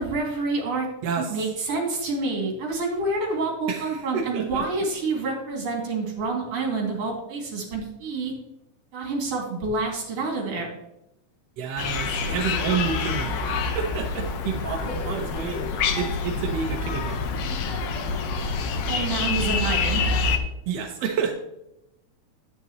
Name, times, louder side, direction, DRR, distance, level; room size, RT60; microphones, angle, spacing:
voice 1, 0.0-0.9 1.2-8.3 8.9-10.7 14.8-14.9 18.9-20.4, right 3 dB, 55° right, -1 dB, 3.3 m, -28 dB
voice 2, 1.0-1.4 3.7-4.6 11.6-15.6 15.9-17.3 20.7-21.3, right 6 dB, 70° right, 2 dB, 1.7 m, -29 dB
sound 1, 11.8-20.4, left 4 dB, 70° left, 1.5 m, -27 dB
10.0 x 9.5 x 3.0 m, 0.87 s
omnidirectional pair, 3.7 m